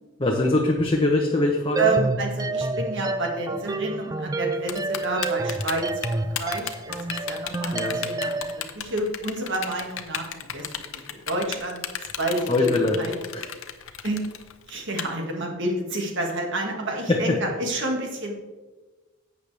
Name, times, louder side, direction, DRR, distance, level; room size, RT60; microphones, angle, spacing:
voice 1, 0.2-2.0 7.7-8.0 12.5-13.0 13.3-13.5 17.1-17.4, left 2 dB, 25° left, 0 dB, 0.9 m, -22 dB
sound 1, 1.8-8.6, right 3 dB, 15° right, 0.4 m, -29 dB
voice 2, 1.8-5.9 6.1-7.0 7.3-8.5 8.7-10.3 10.5-10.7 10.9-11.8 12.2-12.7 13.0-13.1 14.0-14.2 14.7-18.3, right 2 dB, 60° right, 2 dB, 1.9 m, -29 dB
Typing, 4.7-15.0, left 10 dB, 70° left, 0.8 m, -33 dB
11.5 x 8.4 x 3.4 m, 1.2 s
head